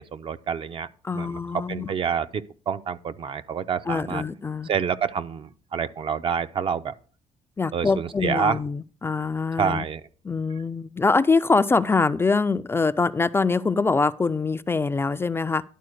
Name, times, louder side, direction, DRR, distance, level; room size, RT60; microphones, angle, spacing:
voice 1, 0.0-0.9 1.1-4.2 4.6-6.9 7.7-8.6 9.6-10.0, right 7 dB, 45° right, 0.5 m, -28 dB
voice 2, 1.0-1.9 3.9-4.7 7.6-9.8 10.2-15.6, left 4 dB, 20° left, 0.3 m, -24 dB
11.0 x 4.3 x 6.3 m
cardioid pair, 105°, 12 cm